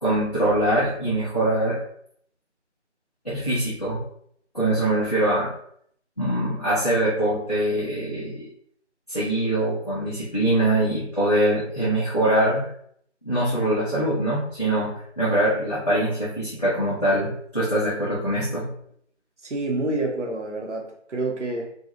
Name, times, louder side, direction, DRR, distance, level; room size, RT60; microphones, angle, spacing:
voice 1, 0.0-1.8 3.2-4.0 4.5-5.5 6.2-8.5 9.1-12.7 13.2-18.7, right 1 dB, 35° left, -9 dB, 0.6 m, -23 dB
voice 2, 19.4-21.7, right 2 dB, 80° right, 0 dB, 0.8 m, -28 dB
2.5 x 2.3 x 2.9 m, 0.66 s
figure-of-eight pair, 165°, 36 cm